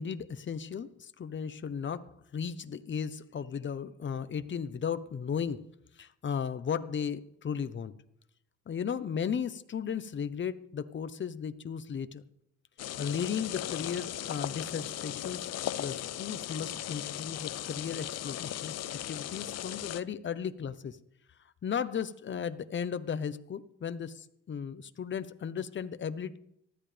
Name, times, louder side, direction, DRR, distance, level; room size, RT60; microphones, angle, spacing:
voice 1, 0.0-5.7 6.0-7.9 8.7-12.2 13.0-15.4 15.8-18.8 19.1-21.0 21.6-26.4, left 7 dB, 40° left, 12 dB, 0.9 m, -35 dB
sound 1, 12.8-20.0, left 12 dB, 60° left, 0.6 m, -37 dB
19.0 x 14.0 x 3.4 m, 0.77 s
cardioid pair, 105°, 30 cm